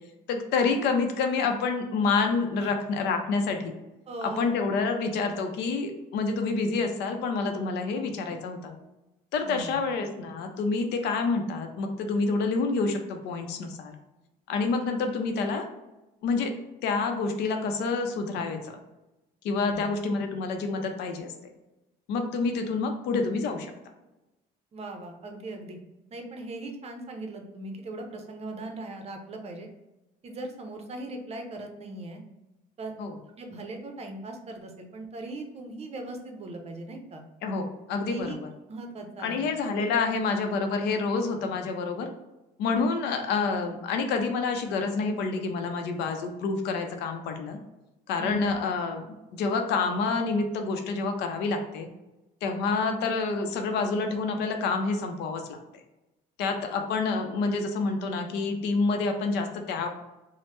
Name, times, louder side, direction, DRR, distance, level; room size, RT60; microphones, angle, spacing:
voice 1, 0.3-3.7 4.4-8.7 9.3-14.0 14.5-15.7 16.2-16.5 16.8-18.8 19.4-21.3 22.1-23.7 33.0-33.1 37.4-38.4 39.2-42.1 42.6-47.6 48.1-49.1 49.3-51.9 52.4-55.6 56.4-59.9, left 4 dB, 80° left, 5 dB, 0.5 m, -28 dB
voice 2, 4.1-4.5 9.4-9.8 19.6-19.9 24.7-25.8 26.1-29.7 30.2-32.2 32.8-32.9 33.4-37.2 38.1-38.4 38.7-39.5 48.2-48.5, right 2 dB, 40° right, 4 dB, 0.6 m, -39 dB
3.1 x 2.0 x 3.0 m, 1.0 s
cardioid pair, 110°, 17 cm